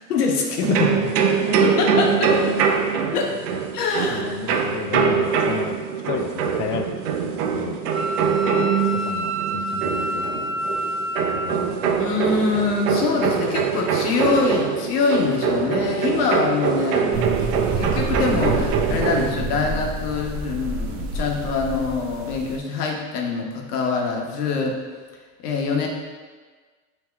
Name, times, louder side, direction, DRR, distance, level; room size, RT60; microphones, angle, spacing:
voice 1, 0.1-0.7 1.6-2.3 3.1-3.3 3.7-4.2 12.0-17.2 17.8-24.8 25.4-25.9, left 4 dB, 90° left, 1 dB, 0.9 m, -24 dB
sound 1, 0.6-19.3, right 6 dB, 85° right, 0.6 m, -23 dB
voice 2, 4.1-7.9 8.2-8.5 8.9-10.5 11.3-12.0 17.0-17.3, left 8 dB, 45° left, 6 dB, 0.4 m, -31 dB
Wind instrument woodwind instrument, 7.9-11.7, right 1 dB, 70° right, 1.2 m, -28 dB
sound 2, 17.1-22.6, right 3 dB, 35° right, 0.4 m, -28 dB
6.9 x 2.9 x 2.2 m, 1.4 s
hypercardioid pair, 105°, 45 cm